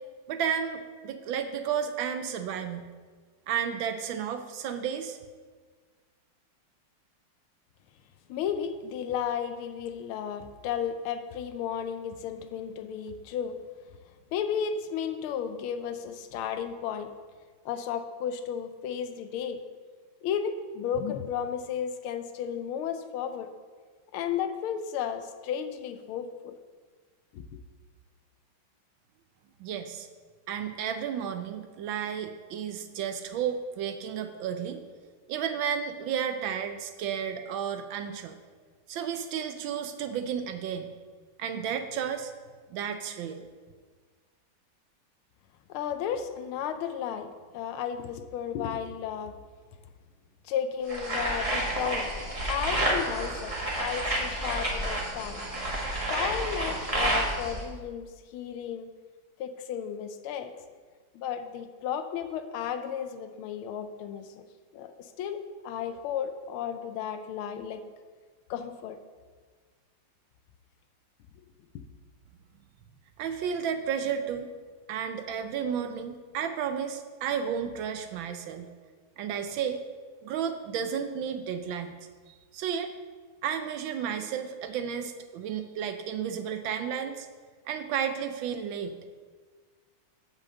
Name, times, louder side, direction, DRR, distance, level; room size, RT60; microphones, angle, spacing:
voice 1, 0.3-2.9 3.5-5.2 29.6-30.1 30.5-34.8 35.3-38.4 38.9-40.9 41.4-42.3 42.7-43.4 73.2-74.5 74.9-78.7 79.2-79.8 80.2-81.9 82.3-82.9 83.4-87.3 87.7-89.0, right 8 dB, 75° right, 8 dB, 1.3 m, -32 dB
voice 2, 8.3-13.6 14.3-17.1 17.6-19.6 20.2-23.5 24.1-26.5 27.3-27.4 45.7-49.4 50.4-52.1 52.5-55.4 56.1-58.9 59.4-60.5 61.1-64.4 64.7-65.4 65.6-67.8 68.5-69.0, left 8 dB, 80° left, 9 dB, 1.5 m, -33 dB
sound 1, 50.9-57.6, right 1 dB, 20° right, 1.2 m, -30 dB
6.6 x 5.5 x 7.3 m, 1.5 s
omnidirectional pair, 2.3 m